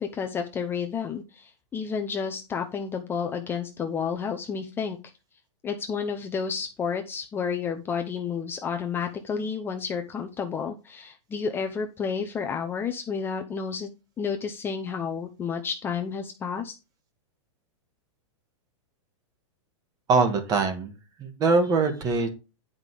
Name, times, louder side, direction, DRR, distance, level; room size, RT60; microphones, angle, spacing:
voice 1, 0.0-5.0 5.6-13.9 14.2-16.7, left 6 dB, 15° left, 0.7 m, -31 dB
voice 2, 20.1-20.9 21.2-22.3, right 4 dB, 25° right, 1.7 m, -23 dB
9.5 x 5.2 x 4.9 m
supercardioid pair, 155°, 16 cm